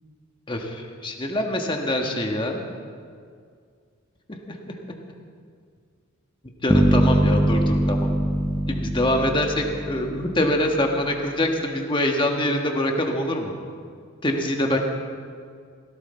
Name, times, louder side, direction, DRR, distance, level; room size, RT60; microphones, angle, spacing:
voice 1, 0.5-2.6 4.3-4.8 6.6-8.1 8.7-13.5 14.2-14.8, left 1 dB, 25° left, 2 dB, 1.4 m, -24 dB
sound 1, 6.7-10.7, right 1 dB, 5° left, 0.7 m, -22 dB
17.0 x 16.0 x 4.4 m, 2.2 s
head